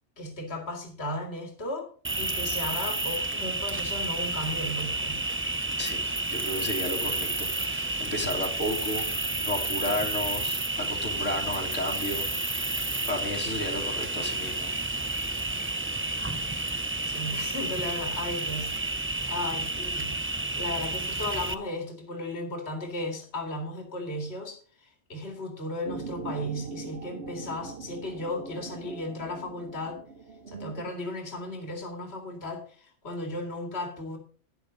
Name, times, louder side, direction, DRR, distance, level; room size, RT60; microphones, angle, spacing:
voice 1, 0.2-1.9 2.2-5.2 17.1-20.2 20.6-30.0 30.5-34.2, left 1 dB, 55° left, 3 dB, 2.5 m, -35 dB
Cricket, 2.0-21.5, right 2 dB, 15° right, 0.4 m, -31 dB
voice 2, 5.8-14.7 15.2-15.3, left 1 dB, 75° left, 0 dB, 2.7 m, -33 dB
sound 1, 25.9-30.9, right 4 dB, 55° right, 1.0 m, -41 dB
11.5 x 10.5 x 3.9 m, 0.42 s
omnidirectional pair, 1.3 m